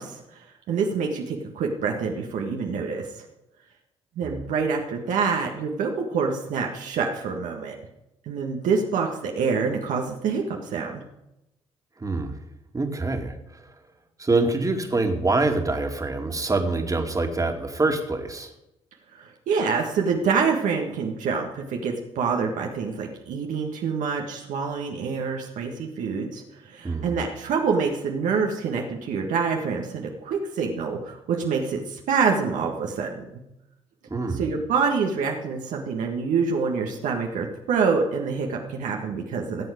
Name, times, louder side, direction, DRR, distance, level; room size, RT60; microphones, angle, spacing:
voice 1, 0.0-3.2 4.1-7.7 8.3-11.0 19.1-33.4 34.3-39.7, right 5 dB, 65° right, 1 dB, 1.7 m, -26 dB
voice 2, 12.0-12.4 12.7-13.7 14.2-18.5 26.8-27.1 34.1-34.4, right 3 dB, 25° right, 4 dB, 2.4 m, -25 dB
18.5 x 7.9 x 5.1 m, 0.89 s
hypercardioid pair, 50°, 14 cm